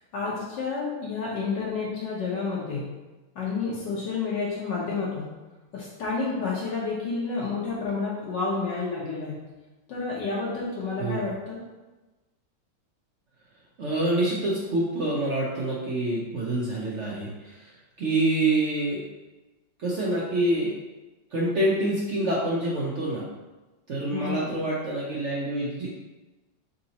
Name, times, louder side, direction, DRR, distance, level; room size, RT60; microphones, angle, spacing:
voice 1, 0.1-2.9 3.3-5.3 5.7-9.4 9.9-11.6 24.1-24.6, left 4 dB, 70° left, -6 dB, 1.4 m, -30 dB
voice 2, 13.8-17.7 18.0-19.0 19.8-20.7 21.3-23.3 23.9-25.9, right 1 dB, 75° right, -5 dB, 0.6 m, -26 dB
3.9 x 2.8 x 3.9 m, 1.1 s
omnidirectional pair, 2.1 m